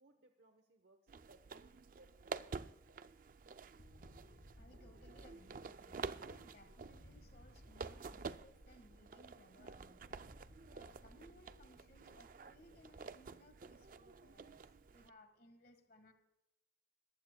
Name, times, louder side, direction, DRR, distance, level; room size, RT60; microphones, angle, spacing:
voice 1, 0.0-3.0, right 2 dB, 65° right, 6 dB, 1.0 m, -67 dB
sound 1, 1.1-15.1, right 5 dB, 45° right, 0.4 m, -50 dB
sound 2, 3.8-6.1 6.8-9.1 10.1-12.4, equal, 75° left, 1.8 m, -61 dB
sound 3, 4.5-14.6, equal, 25° right, 2.1 m, -68 dB
voice 2, 4.6-10.0 10.7-16.1, left 1 dB, 50° left, 8 dB, 1.6 m, -64 dB
21.5 x 14.5 x 2.3 m, 0.93 s
head